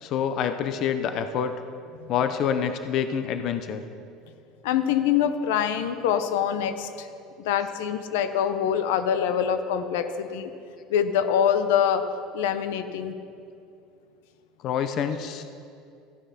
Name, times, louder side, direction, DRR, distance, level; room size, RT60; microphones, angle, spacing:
voice 1, 0.0-1.5 2.1-3.8 14.6-15.4, left 8 dB, 45° left, 9 dB, 0.6 m, -27 dB
voice 2, 4.6-7.1 7.4-10.5 10.9-12.0 12.3-13.2, left 9 dB, 90° left, 10 dB, 0.7 m, -24 dB
14.0 x 8.1 x 5.9 m, 2.5 s
cardioid pair, 155°, 0 cm